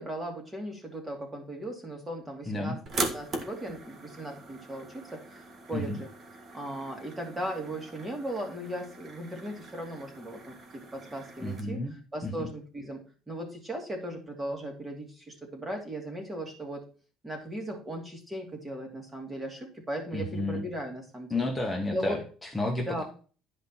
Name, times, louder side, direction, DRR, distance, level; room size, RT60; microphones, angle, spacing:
voice 1, 0.0-6.1 6.5-16.8 17.2-21.5 21.9-22.2 22.9-23.0, right 1 dB, 15° right, 3 dB, 2.6 m, -37 dB
voice 2, 2.5-2.8 5.7-6.0 11.4-11.9 12.2-12.5 20.1-20.6 21.3-23.0, left 2 dB, 10° left, -1 dB, 1.3 m, -31 dB
sound 1, 2.9-11.6, right 2 dB, 40° right, 1.7 m, -40 dB
10.5 x 5.2 x 4.4 m, 0.39 s
cardioid pair, 125°, 0 cm